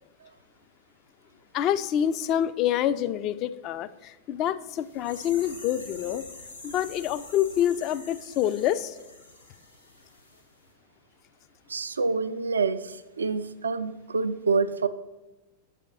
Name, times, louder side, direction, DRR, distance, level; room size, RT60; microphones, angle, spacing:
voice 1, 1.5-6.3 6.6-9.0, left 10 dB, 35° left, 14 dB, 0.3 m, -27 dB
sound 1, 4.8-10.4 10.7-10.8, left 2 dB, 80° left, 2.3 m, -46 dB
voice 2, 11.7-14.9, right 4 dB, 75° right, 12 dB, 0.4 m, -27 dB
6.9 x 4.9 x 5.8 m, 1.0 s
figure-of-eight pair, 90°, 0 cm